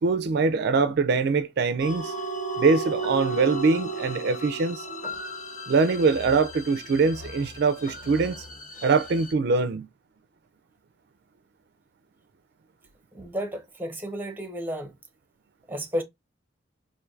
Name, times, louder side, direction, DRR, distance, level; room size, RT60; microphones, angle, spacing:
voice 1, 0.0-2.1 2.6-4.9 5.7-8.4 8.8-9.9, right 4 dB, 60° right, 0.4 m, -23 dB
sound 1, 1.8-9.3, right 2 dB, 45° left, 1.2 m, -34 dB
voice 2, 13.1-14.9 15.7-16.0, equal, 10° right, 0.8 m, -32 dB
4.4 x 2.6 x 2.4 m
head